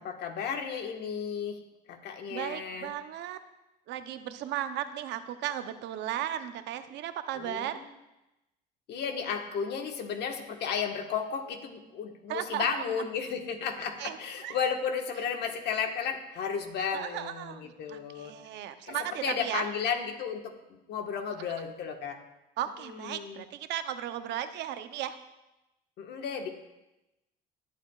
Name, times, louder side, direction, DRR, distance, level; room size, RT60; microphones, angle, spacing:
voice 1, 0.0-1.6 1.9-2.9 7.4-7.9 8.9-18.3 18.9-19.0 19.2-22.2 22.9-23.4 26.0-26.5, left 6 dB, 70° left, 4 dB, 1.4 m, -33 dB
voice 2, 2.3-3.4 3.9-7.8 12.3-13.1 14.0-14.6 16.9-19.7 22.6-25.2, right 11 dB, 75° right, 10 dB, 0.8 m, -36 dB
19.5 x 8.4 x 2.4 m, 0.95 s
cardioid pair, 115°, 18 cm